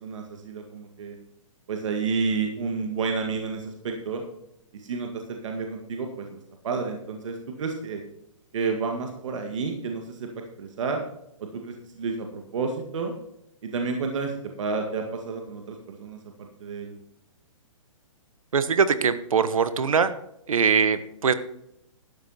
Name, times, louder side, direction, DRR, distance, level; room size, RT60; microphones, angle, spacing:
voice 1, 0.0-1.2 1.7-4.2 4.7-8.0 8.5-10.3 10.6-11.0 11.4-13.2 13.6-16.9, right 4 dB, 65° right, 3 dB, 2.0 m, -30 dB
voice 2, 18.5-20.1 20.5-21.3, right 6 dB, 85° right, 13 dB, 1.2 m, -22 dB
12.5 x 9.2 x 4.3 m, 0.79 s
hypercardioid pair, 145°, 17 cm